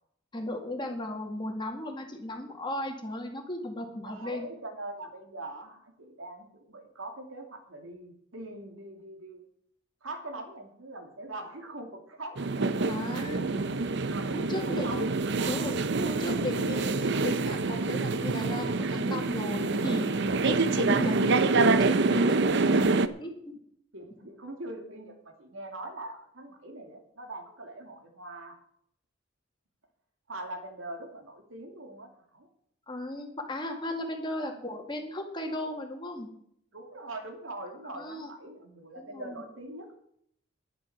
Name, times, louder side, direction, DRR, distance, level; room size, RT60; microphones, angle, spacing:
voice 1, 0.3-4.5 12.8-13.5 14.3-15.1 15.5-20.1 20.4-22.9 23.2-23.3 32.9-36.3 37.8-38.3 39.0-39.4, left 1 dB, 20° left, 3 dB, 2.0 m, -36 dB
voice 2, 4.0-9.5 10.0-12.4 14.1-15.0 15.4-16.3 23.9-28.6 30.3-32.5 34.4-34.7 36.7-40.0, right 2 dB, 75° right, 3 dB, 2.6 m, -42 dB
sound 1, 12.4-23.1, right 3 dB, 55° right, 0.7 m, -26 dB
11.0 x 11.0 x 6.0 m, 0.71 s
head